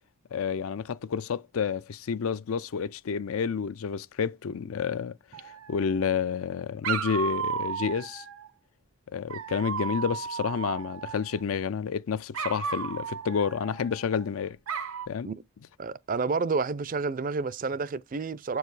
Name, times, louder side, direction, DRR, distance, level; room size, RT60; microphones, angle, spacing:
voice 1, 0.3-5.1 5.4-8.2 9.1-14.6 15.1-15.3, left 6 dB, 80° left, 0.4 m, -30 dB
Dog, 5.3-6.2 6.8-8.5 9.3-11.4 12.3-14.2 14.7-15.1, right 6 dB, 85° right, 0.8 m, -34 dB
voice 2, 15.8-18.6, right 4 dB, 40° right, 0.4 m, -29 dB
7.5 x 4.7 x 4.8 m
head